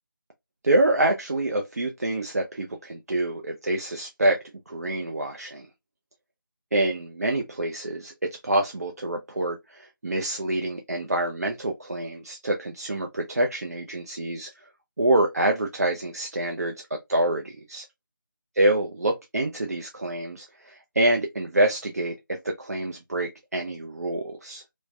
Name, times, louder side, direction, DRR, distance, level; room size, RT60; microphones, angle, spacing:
voice 1, 0.6-4.4 4.7-5.7 6.7-8.1 8.4-14.5 15.0-16.7 17.1-17.9 18.5-22.1 22.4-24.6, right 1 dB, 45° right, 0.4 m, -26 dB
3.1 x 2.1 x 2.3 m
figure-of-eight pair, 170°, 11 cm